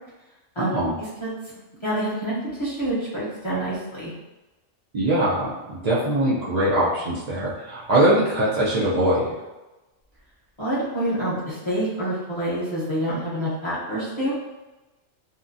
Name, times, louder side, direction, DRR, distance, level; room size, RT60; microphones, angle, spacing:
voice 1, 0.6-0.9 4.9-9.3, right 1 dB, 70° right, -7 dB, 0.4 m, -22 dB
voice 2, 1.8-4.1 10.6-14.4, right 1 dB, 30° left, -10 dB, 0.6 m, -27 dB
2.8 x 2.1 x 2.5 m, 1.1 s
omnidirectional pair, 1.4 m